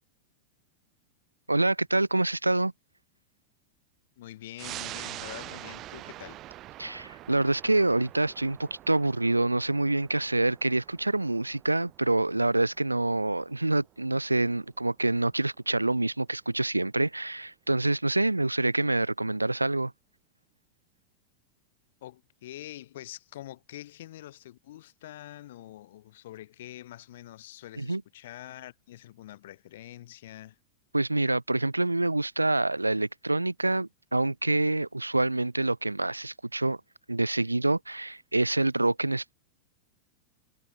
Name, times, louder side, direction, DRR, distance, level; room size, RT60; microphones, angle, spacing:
voice 1, 1.5-2.7 6.8-19.9 27.8-28.0 30.9-36.8 37.1-39.3, right 2 dB, 85° right, 0.3 m, -26 dB
voice 2, 4.2-6.4 22.0-30.6, left 14 dB, 55° left, 2.5 m, -45 dB
sound 1, 4.6-15.6 15.9-16.0, right 15 dB, 35° right, 1.8 m, -45 dB
figure-of-eight pair, 90°, 0 cm